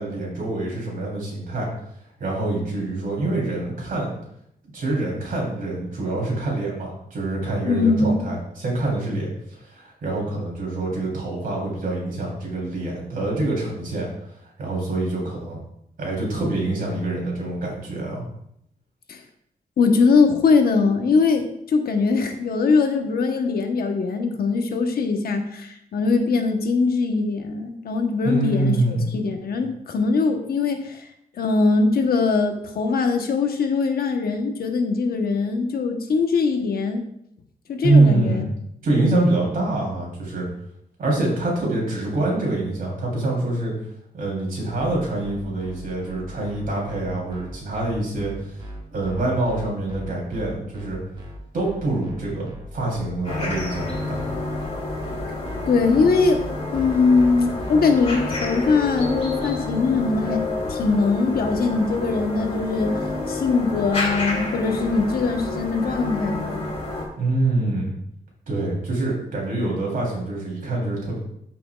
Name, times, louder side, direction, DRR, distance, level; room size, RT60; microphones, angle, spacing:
voice 1, 0.0-1.7 2.2-4.1 4.7-14.1 14.4-15.6 16.0-18.2 28.2-29.1 37.8-38.5 38.8-40.5 41.0-43.7 44.1-48.6 48.9-51.0 51.5-52.4 52.7-54.2 67.2-67.9 68.5-71.2, right 2 dB, 60° right, -3 dB, 3.4 m, -25 dB
voice 2, 7.6-8.2 19.1-19.2 19.8-31.0 31.4-37.0 37.7-38.5 55.7-56.4 56.7-63.0 63.3-66.7, left 4 dB, 70° left, 5 dB, 1.1 m, -21 dB
sound 1, 44.7-58.2, equal, 30° right, 1.3 m, -38 dB
sound 2, 53.2-67.0, left 2 dB, 40° left, 2.5 m, -29 dB
13.5 x 6.1 x 2.4 m, 0.75 s
wide cardioid pair, 175°, 16 cm